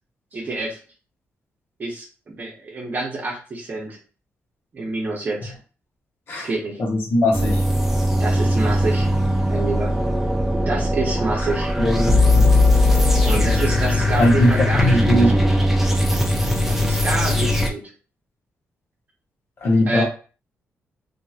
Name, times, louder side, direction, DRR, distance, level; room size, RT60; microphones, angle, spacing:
voice 1, 0.3-0.8 1.8-4.0 4.7-5.5 6.4-6.8 8.2-9.1 9.5-10.0 10.7-11.7 13.3-15.2 16.7-17.9 19.9-20.0, right 2 dB, 40° right, -2 dB, 0.8 m, -27 dB
voice 2, 6.8-7.6 11.4-11.5 11.8-12.5 14.2-15.3 19.6-20.0, left 1 dB, 50° left, -1 dB, 1.0 m, -19 dB
sound 1, 7.3-17.7, left 1 dB, 5° right, 0.5 m, -19 dB
2.8 x 2.6 x 2.4 m, 0.37 s
cardioid pair, 120°, 5 cm